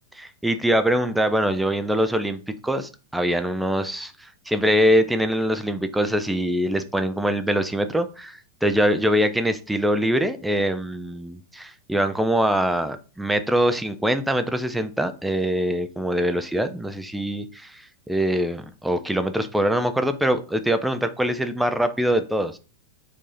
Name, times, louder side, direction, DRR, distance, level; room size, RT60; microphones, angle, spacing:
voice 1, 0.1-22.6, equal, 5° right, 8 dB, 0.4 m, -23 dB
4.6 x 2.7 x 4.0 m, 0.34 s
figure-of-eight pair, 90°, 0 cm